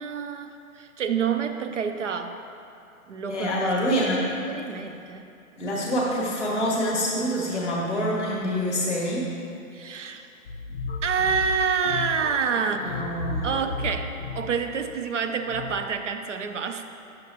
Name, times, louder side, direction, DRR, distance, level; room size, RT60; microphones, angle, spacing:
voice 1, 0.0-2.4 3.1-4.1 4.5-5.3 9.7-10.3 11.0-13.0 13.4-16.8, right 6 dB, 55° right, 7 dB, 0.6 m, -28 dB
voice 2, 3.3-4.3 5.6-9.3 12.5-13.5, equal, 5° right, -16 dB, 0.7 m, -26 dB
sound 1, 10.5-15.9, left 3 dB, 35° left, 0.8 m, -34 dB
9.1 x 6.5 x 2.8 m, 2.6 s
hypercardioid pair, 160°, 43 cm